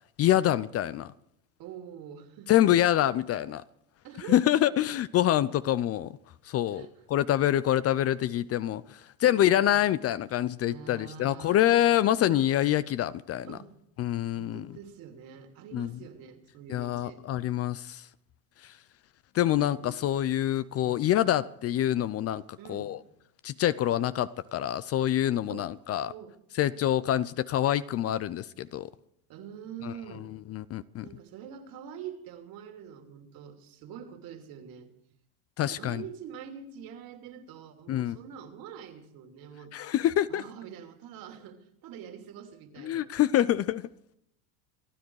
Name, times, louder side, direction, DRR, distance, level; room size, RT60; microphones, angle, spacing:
voice 1, 0.2-1.1 2.5-3.6 4.3-6.2 6.4-13.6 14.0-14.7 15.7-15.9 16.7-18.1 18.6-18.8 19.3-22.4 22.7-23.0 23.4-26.1 26.5-28.9 29.8-29.9 30.5-31.1 35.6-36.0 37.9-38.2 39.7-40.4 42.8-43.9, left 12 dB, 35° left, 0.6 m, -26 dB
voice 2, 1.6-2.6 4.0-4.5 6.7-6.9 9.2-9.9 10.7-11.9 12.2-12.5 13.4-13.7 14.3-17.2 19.8-20.1 20.7-21.0 22.6-22.9 25.5-25.7 26.0-26.3 29.3-30.3 31.0-34.9 35.6-39.7 40.3-43.1, right 8 dB, 55° right, 3.0 m, -45 dB
27.0 x 10.5 x 4.8 m
supercardioid pair, 105°, 42 cm